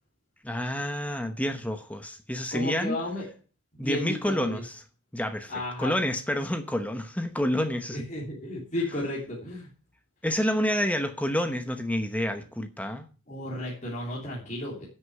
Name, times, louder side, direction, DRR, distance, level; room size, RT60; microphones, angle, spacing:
voice 1, 0.4-3.0 3.8-4.7 5.1-5.5 5.8-8.0 10.2-13.1, equal, 5° left, 7 dB, 0.9 m, -28 dB
voice 2, 2.5-3.2 3.7-4.6 5.5-5.9 7.9-9.7 13.3-14.9, left 1 dB, 35° left, -4 dB, 3.0 m, -33 dB
10.0 x 6.6 x 7.8 m, 0.37 s
head